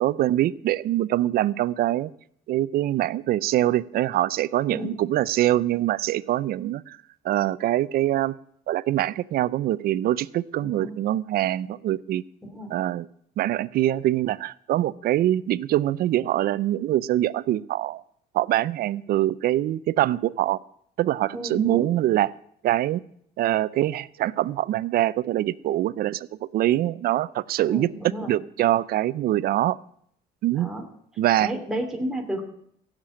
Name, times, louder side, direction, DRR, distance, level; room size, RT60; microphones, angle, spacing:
voice 1, 0.0-2.1 2.5-7.0 7.2-8.3 8.7-12.2 12.7-13.1 13.4-18.0 18.3-20.6 21.0-22.4 22.6-23.0 23.4-26.3 26.5-27.9 28.3-29.8 30.4-30.7 31.2-31.5, right 13 dB, 65° right, 19 dB, 0.5 m, -24 dB
voice 2, 10.6-10.9 12.5-12.7 21.3-21.9 27.7-28.3 30.5-30.8 31.4-32.4, right 1 dB, 5° right, 1 dB, 2.8 m, -32 dB
15.5 x 7.5 x 8.6 m, 0.68 s
cardioid pair, 110°, 17 cm